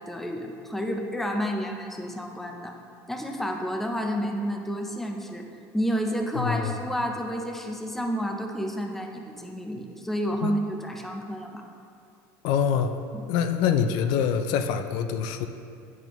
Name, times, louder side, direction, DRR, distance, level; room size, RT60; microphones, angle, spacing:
voice 1, 0.1-2.7 3.1-5.5 5.7-11.6 13.1-13.2, equal, 5° left, 2 dB, 0.5 m, -30 dB
voice 2, 6.3-6.8 10.4-10.5 12.4-13.0 13.3-15.5, left 7 dB, 70° left, 8 dB, 0.4 m, -25 dB
8.7 x 6.0 x 3.0 m, 2.4 s
cardioid pair, 155°, 8 cm